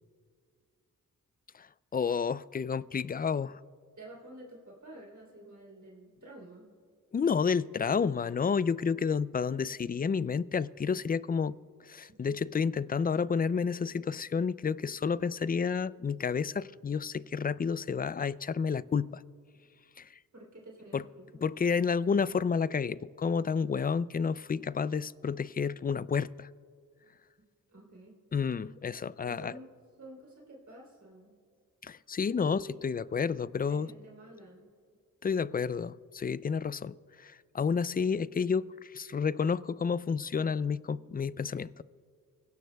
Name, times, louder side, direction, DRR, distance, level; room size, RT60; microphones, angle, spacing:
voice 1, 1.5-3.6 7.1-11.6 11.8-19.2 20.0-20.1 20.9-21.0 21.4-26.5 28.3-29.6 31.8-33.9 35.2-41.8, left 6 dB, 25° left, 0.3 m, -30 dB
voice 2, 4.0-6.7 20.3-21.4 27.7-28.2 29.2-29.7 30.0-31.3 32.4-32.7 33.7-34.7, right 1 dB, 55° right, 3.4 m, -50 dB
26.0 x 16.5 x 2.3 m
cardioid pair, 60°, 34 cm